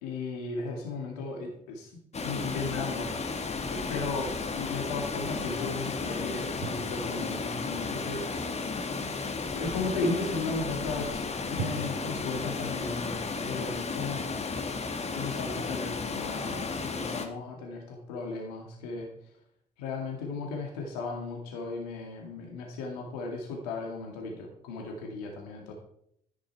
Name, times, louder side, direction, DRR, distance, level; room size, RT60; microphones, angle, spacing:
voice 1, 0.0-2.0 2.2-3.1 3.7-8.9 9.5-14.3 15.1-19.1 19.8-25.7, left 3 dB, 75° left, 1 dB, 2.2 m, -36 dB
Water, 2.1-17.3, left 4 dB, 30° left, 1.8 m, -34 dB
sound 1, 6.6-8.3 11.6-12.2, right 8 dB, 55° right, 1.2 m, -40 dB
11.0 x 10.0 x 4.6 m, 0.71 s
hypercardioid pair, 50°, 20 cm